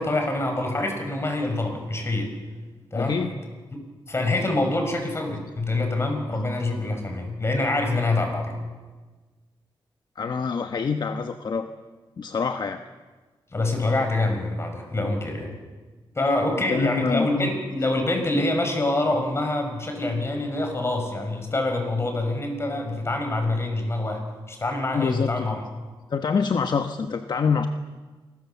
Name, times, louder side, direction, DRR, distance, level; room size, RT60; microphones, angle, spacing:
voice 1, 0.0-2.3 2.9-3.2 4.1-8.5 13.5-15.6 16.1-25.7, left 2 dB, 30° left, 4 dB, 5.9 m, -25 dB
voice 2, 2.9-3.4 10.2-11.7 12.2-12.8 16.7-17.5 24.9-25.5 26.1-27.7, left 5 dB, 55° left, 7 dB, 1.1 m, -26 dB
27.0 x 21.0 x 7.0 m, 1.3 s
wide cardioid pair, 100°, 9 cm